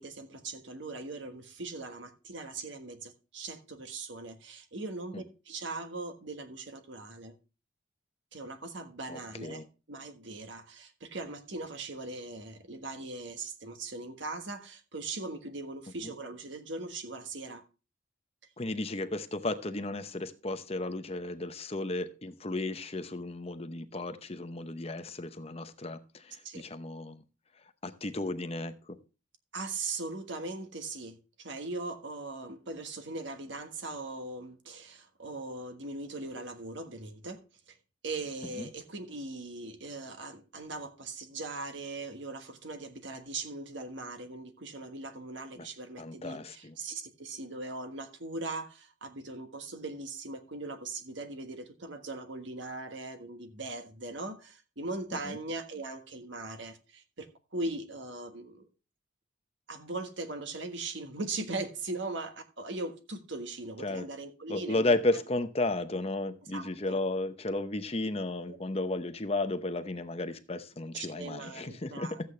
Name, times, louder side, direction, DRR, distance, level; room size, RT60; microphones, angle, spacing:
voice 1, 0.0-7.4 8.3-17.6 26.4-26.7 29.5-37.4 37.7-37.8 38.0-57.3 57.5-58.7 59.7-65.0 66.5-67.0 68.5-68.6 70.9-72.2, right 2 dB, 65° right, 1.5 m, -40 dB
voice 2, 9.1-9.6 18.6-27.2 27.8-29.0 38.6-38.7 45.6-45.7 46.0-46.7 55.2-55.4 63.8-64.1 64.5-72.2, left 2 dB, 30° left, 0.8 m, -34 dB
13.5 x 8.2 x 3.3 m
head